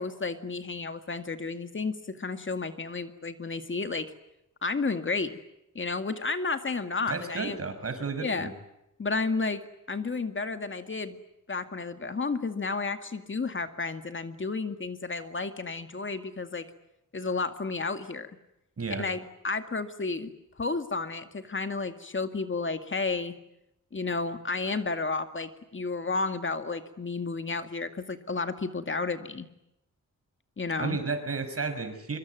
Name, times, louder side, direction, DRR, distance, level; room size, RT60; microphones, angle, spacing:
voice 1, 0.0-4.1 4.6-5.3 5.7-7.6 8.2-8.5 9.0-9.6 9.9-11.2 11.5-16.7 17.1-18.3 18.9-20.3 20.6-23.3 23.9-29.5 30.6-31.0, left 4 dB, 40° left, 8 dB, 2.1 m, -32 dB
voice 2, 7.1-8.5 18.8-19.1 30.8-32.2, right 4 dB, 50° right, 8 dB, 6.0 m, -32 dB
25.5 x 24.5 x 9.5 m, 0.85 s
wide cardioid pair, 105°, 30 cm